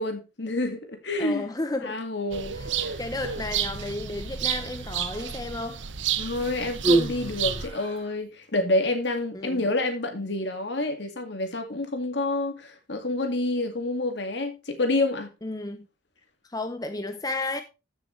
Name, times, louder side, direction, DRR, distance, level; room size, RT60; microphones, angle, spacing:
voice 1, 0.0-1.5 1.8-2.6 2.8-3.0 6.2-15.3, left 2 dB, 65° left, 2.2 m, -28 dB
voice 2, 1.2-2.0 2.6-2.7 3.0-5.8 9.3-9.7 15.4-15.9 16.5-17.6, left 2 dB, 20° left, 0.7 m, -33 dB
sound 1, 2.3-7.7, right 9 dB, 75° right, 0.9 m, -31 dB
Human voice, 4.4-5.3 6.2-8.1 9.1-9.2, right 2 dB, 30° right, 5.1 m, -29 dB
14.0 x 6.8 x 3.3 m
head